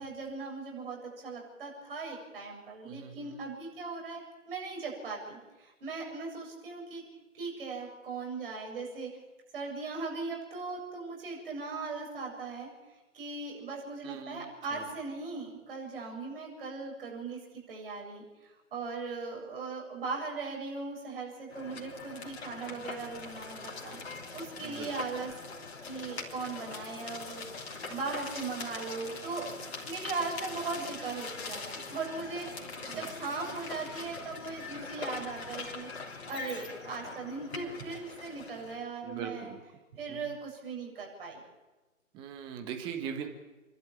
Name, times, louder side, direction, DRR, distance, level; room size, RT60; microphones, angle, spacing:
voice 1, 0.0-7.0 7.3-9.1 9.5-12.7 13.1-17.4 17.7-24.0 24.3-25.3 25.6-29.5 29.8-32.5 32.9-35.9 36.3-39.5 39.9-41.4, right 4 dB, 40° right, -1 dB, 7.9 m, -39 dB
voice 2, 2.8-3.3 14.0-14.8 24.6-24.9 32.8-33.1 39.0-39.6 40.1-40.2 42.1-43.3, right 7 dB, 10° right, 5 dB, 1.4 m, -41 dB
sound 1, 21.5-38.8, left 4 dB, 50° left, 3.5 m, -42 dB
28.5 x 12.0 x 8.7 m, 1.1 s
figure-of-eight pair, 140°, 41 cm